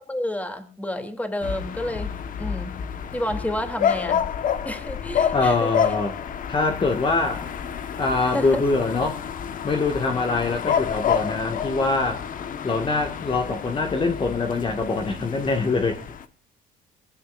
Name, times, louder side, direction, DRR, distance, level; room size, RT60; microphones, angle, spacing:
voice 1, 0.1-2.1 2.4-2.8 3.1-4.2 4.6-5.9 8.3-8.6, left 1 dB, 10° left, 6 dB, 3.2 m, -30 dB
sound 1, 1.4-16.2, left 8 dB, 55° left, 1.5 m, -29 dB
voice 2, 5.3-6.2 6.5-7.5 8.0-9.2 9.6-12.2 12.6-16.0, left 3 dB, 30° left, 4 dB, 2.1 m, -24 dB
23.5 x 16.0 x 2.6 m, 0.42 s
cardioid pair, 110°, 17 cm